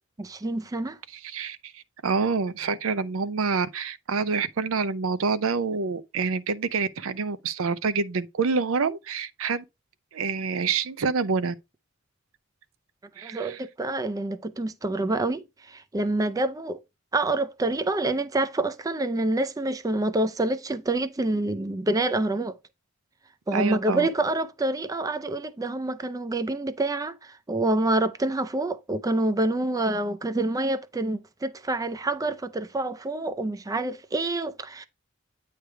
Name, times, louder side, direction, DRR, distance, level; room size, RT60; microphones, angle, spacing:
voice 1, 0.2-1.0 13.2-16.8 17.1-22.5 23.5-34.9, right 2 dB, 15° right, 0.4 m, -27 dB
voice 2, 1.1-9.6 10.1-11.5 13.2-13.6 23.5-24.1, right 5 dB, 80° right, 0.5 m, -27 dB
9.0 x 3.3 x 4.4 m
head